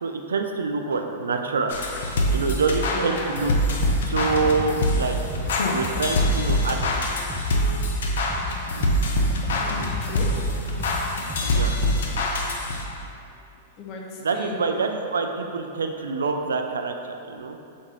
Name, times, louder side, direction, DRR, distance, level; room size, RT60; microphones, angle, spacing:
voice 1, 0.0-1.8 2.3-3.5 4.1-5.3 5.7-7.2 11.5-11.7 14.2-17.6, right 4 dB, 90° right, 5 dB, 0.3 m, -26 dB
sound 1, 1.7-13.0, left 1 dB, 75° left, 0.5 m, -25 dB
voice 2, 2.9-3.5 4.0-4.1 7.2-11.6 13.8-14.6, left 2 dB, 40° left, 0 dB, 0.7 m, -40 dB
sound 2, 3.8-4.0 4.3-8.0 8.3-11.7, left 2 dB, 10° right, 0.5 m, -34 dB
4.1 x 3.2 x 3.7 m, 2.5 s
hypercardioid pair, 115°, 0 cm